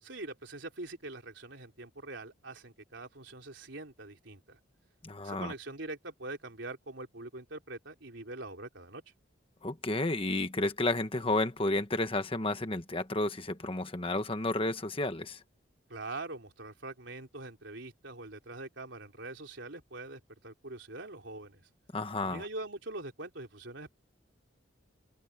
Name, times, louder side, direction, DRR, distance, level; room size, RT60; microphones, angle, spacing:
voice 1, 0.0-4.6 5.2-9.0 15.9-21.6 22.2-23.9, right 2 dB, 70° right, 3.7 m, -43 dB
voice 2, 5.0-5.5 9.6-15.4 21.9-22.5, left 2 dB, 30° left, 1.3 m, -31 dB
head